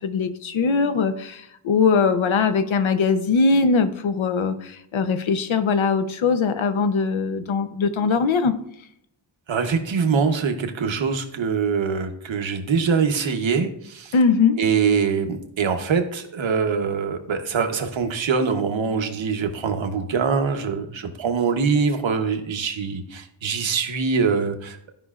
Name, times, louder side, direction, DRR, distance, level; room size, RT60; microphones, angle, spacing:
voice 1, 0.0-8.5 14.1-14.6, left 5 dB, 90° left, 10 dB, 0.8 m, -21 dB
voice 2, 9.5-14.1 14.6-24.9, right 5 dB, 75° right, 6 dB, 1.0 m, -23 dB
14.0 x 5.4 x 2.4 m, 0.74 s
wide cardioid pair, 165°, 46 cm